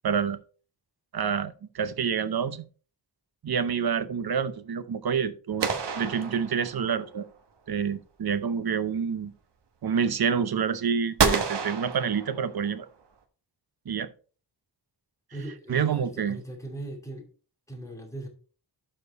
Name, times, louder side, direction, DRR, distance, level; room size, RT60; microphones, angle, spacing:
voice 1, 0.0-0.4 1.1-2.7 3.4-5.7 6.0-7.3 7.7-9.3 9.8-12.9 13.9-14.1 15.7-16.4, right 7 dB, 60° right, 0.8 m, -28 dB
sound 1, 5.6-7.1 11.2-12.8, right 5 dB, 80° right, 1.3 m, -28 dB
voice 2, 15.3-17.3 17.7-18.3, right 2 dB, 5° left, 2.5 m, -39 dB
12.0 x 4.5 x 4.1 m
wide cardioid pair, 135°, 41 cm